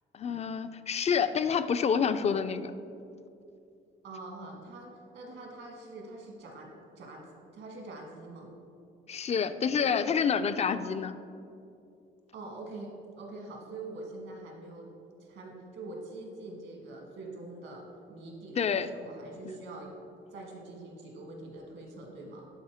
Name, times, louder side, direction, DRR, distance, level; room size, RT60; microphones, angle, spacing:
voice 1, 0.1-2.7 9.1-11.1 18.6-18.9, left 6 dB, 35° left, 11 dB, 0.4 m, -28 dB
voice 2, 4.0-6.7 7.0-7.2 7.5-8.5 12.3-14.9 15.2-17.8 18.1-20.0 20.3-22.5, right 2 dB, 75° right, 0 dB, 1.7 m, -44 dB
11.0 x 4.3 x 3.5 m, 2.6 s
cardioid pair, 90°, 20 cm